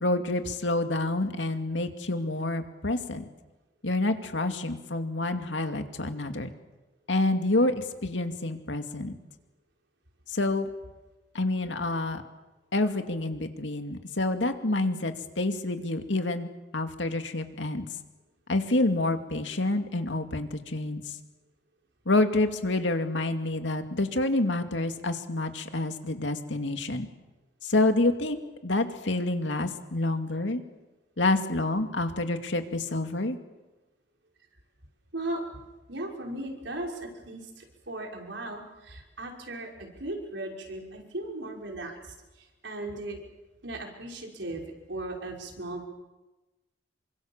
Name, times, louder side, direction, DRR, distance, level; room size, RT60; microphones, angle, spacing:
voice 1, 0.0-3.3 3.8-6.5 7.1-9.2 10.3-10.7 11.3-12.2 12.7-17.8 18.5-21.0 22.1-27.1 27.6-30.6 31.2-33.4, left 2 dB, 90° left, 6 dB, 2.4 m, -28 dB
voice 2, 35.9-43.2 43.6-44.6 44.9-45.9, right 1 dB, 80° right, 1 dB, 5.8 m, -37 dB
28.0 x 24.5 x 7.4 m, 1.1 s
head